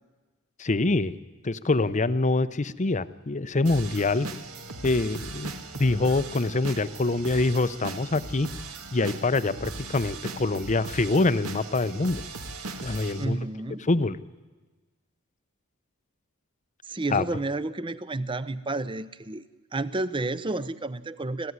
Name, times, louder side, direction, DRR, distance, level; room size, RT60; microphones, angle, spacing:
voice 1, 0.6-1.1 1.4-4.3 4.8-8.5 8.9-12.2 12.8-13.5 13.9-14.2 17.1-17.2, left 2 dB, 35° left, 14 dB, 0.7 m, -25 dB
sound 1, 3.6-13.2, right 3 dB, 80° right, 2.0 m, -39 dB
voice 2, 13.2-13.9 16.8-19.4 19.7-21.5, right 2 dB, 25° right, 15 dB, 0.8 m, -31 dB
25.5 x 15.5 x 9.6 m, 1.3 s
head